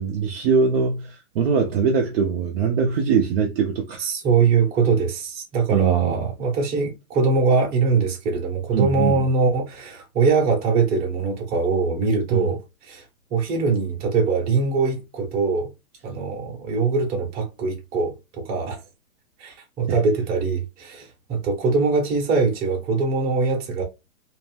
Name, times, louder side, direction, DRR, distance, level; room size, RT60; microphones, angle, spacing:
voice 1, 0.0-4.1 5.7-6.2 8.7-9.2 12.3-12.5 19.9-20.0, right 6 dB, 45° right, 0.6 m, -22 dB
voice 2, 4.0-13.0 13.3-15.7 16.0-18.8 19.4-23.8, right 4 dB, 20° right, 0.9 m, -22 dB
2.6 x 2.0 x 3.2 m
hypercardioid pair, 140°, 42 cm